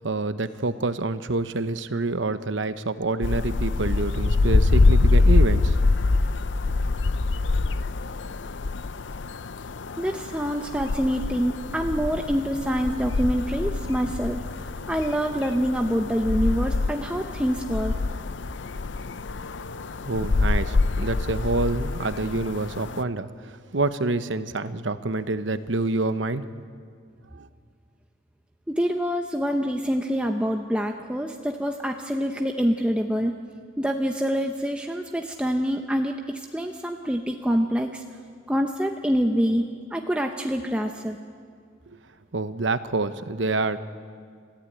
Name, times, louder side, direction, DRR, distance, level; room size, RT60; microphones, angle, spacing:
voice 1, 0.0-5.8 20.0-26.4 27.3-27.5 42.3-43.8, right 2 dB, 75° right, 12 dB, 1.0 m, -27 dB
sound 1, 3.2-23.0, left 3 dB, 70° left, 0.6 m, -25 dB
voice 2, 10.0-17.9 28.7-33.3 33.8-38.0 38.5-41.2, equal, 5° right, 3 dB, 0.8 m, -26 dB
30.0 x 14.5 x 9.1 m, 2.2 s
head